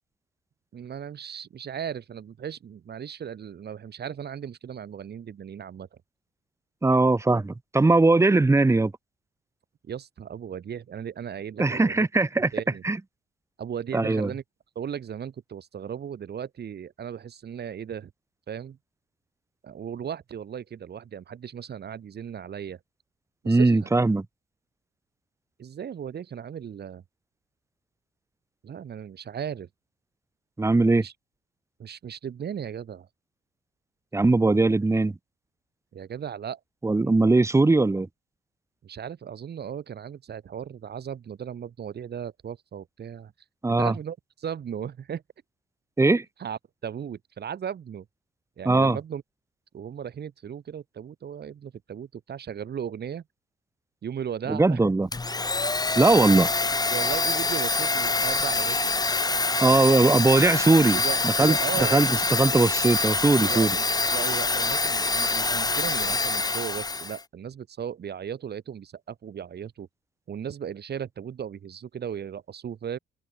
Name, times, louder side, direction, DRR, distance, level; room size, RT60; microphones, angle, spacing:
voice 1, 0.7-5.9 9.8-12.1 12.5-12.8 13.6-14.4 14.8-18.1 18.5-18.8 19.6-22.8 23.4-23.9 25.6-27.0 28.6-29.7 31.0-31.1 31.8-33.1 35.9-36.6 38.8-43.3 43.8-45.2 46.4-48.1 48.6-49.2 49.7-53.2 54.0-54.9 56.9-58.9 60.9-62.0 63.4-63.9 64.1-69.9 70.3-73.0, right 8 dB, 55° right, 5.5 m, -36 dB
voice 2, 6.8-8.9 11.6-12.5 12.8-13.0 13.9-14.3 23.5-24.2 30.6-31.0 34.1-35.1 36.8-38.1 43.6-43.9 46.0-46.2 48.6-49.0 54.5-55.1 56.0-56.5 59.6-61.6 61.9-63.8, right 3 dB, 15° right, 0.9 m, -20 dB
Domestic sounds home sounds, 55.1-67.2, left 3 dB, 20° left, 1.6 m, -25 dB
cardioid pair, 90°, 20 cm